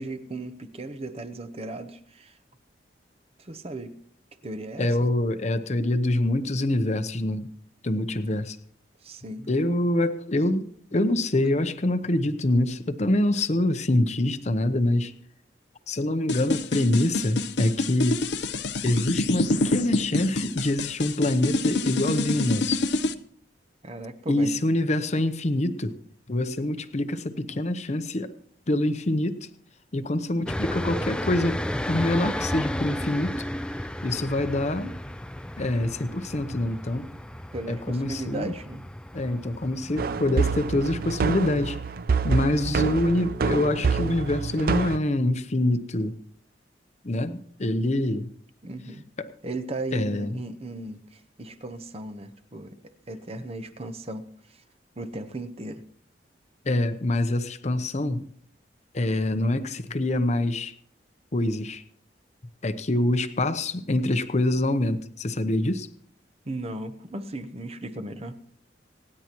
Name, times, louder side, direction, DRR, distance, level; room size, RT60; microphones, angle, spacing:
voice 1, 0.0-2.3 3.4-3.9 4.4-5.1 9.0-9.5 23.8-24.6 37.5-38.9 48.6-49.0 49.4-54.6 55.0-55.8 66.4-68.4, right 2 dB, 35° right, 10 dB, 0.9 m, -36 dB
voice 2, 4.8-7.5 7.8-8.6 9.5-15.1 15.9-18.2 18.8-22.8 24.3-25.9 26.3-28.3 28.7-29.5 29.9-31.6 31.9-33.4 34.0-34.9 35.6-37.1 37.7-38.5 39.1-41.8 42.2-46.1 47.0-48.3 49.2-49.3 49.9-50.3 56.6-58.3 58.9-60.7 61.3-61.8 62.6-65.9, left 1 dB, 40° left, 10 dB, 0.8 m, -25 dB
sound 1, 16.3-23.1, left 2 dB, 70° left, 0.7 m, -26 dB
sound 2, 30.5-41.1, left 1 dB, 5° left, 0.4 m, -33 dB
sound 3, 40.0-45.0, right 5 dB, 55° right, 0.5 m, -26 dB
26.0 x 9.8 x 3.0 m, 0.63 s
head